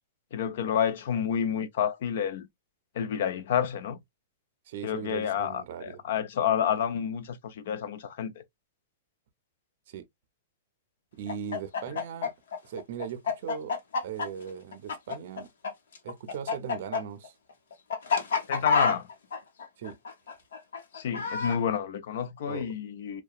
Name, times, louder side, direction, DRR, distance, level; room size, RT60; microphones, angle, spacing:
voice 1, 0.3-2.5 3.0-4.0 4.8-8.3 18.5-19.1 20.9-23.2, left 8 dB, 60° left, 0.4 m, -29 dB
voice 2, 4.7-6.0 9.9-10.0 11.2-12.3 12.6-13.8 14.0-15.5 16.0-17.3 19.8-20.0 22.4-22.7, right 8 dB, 55° right, 0.5 m, -39 dB
Chicken rooster, 11.3-15.7 15.9-21.6, left 5 dB, 90° left, 0.9 m, -28 dB
2.8 x 2.2 x 2.3 m
supercardioid pair, 165°, 0 cm